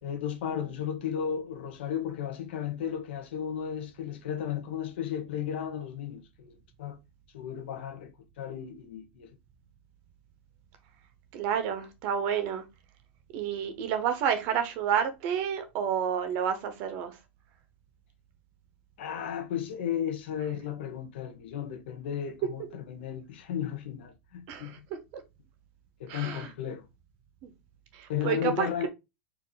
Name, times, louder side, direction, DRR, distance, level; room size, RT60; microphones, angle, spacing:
voice 1, 0.0-7.0 7.3-9.3 19.0-24.9 26.0-26.8 28.1-28.9, left 9 dB, 65° left, 1.1 m, -34 dB
voice 2, 11.3-12.6 13.3-17.2 24.5-24.8 26.1-26.5 27.4-27.5 27.9-28.9, right 8 dB, 40° right, 0.9 m, -30 dB
4.5 x 2.7 x 4.1 m
supercardioid pair, 160°, 6 cm